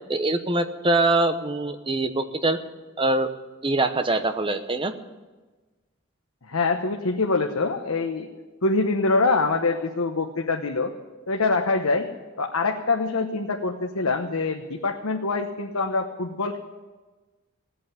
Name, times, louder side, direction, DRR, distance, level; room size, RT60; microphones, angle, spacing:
voice 1, 0.1-2.6 3.0-3.3 3.6-4.9, right 2 dB, 25° right, 9 dB, 0.9 m, -23 dB
voice 2, 6.4-8.3 8.6-10.9 11.3-12.1 12.4-16.6, left 3 dB, 85° left, 3 dB, 1.1 m, -24 dB
17.5 x 8.6 x 9.2 m, 1.3 s
head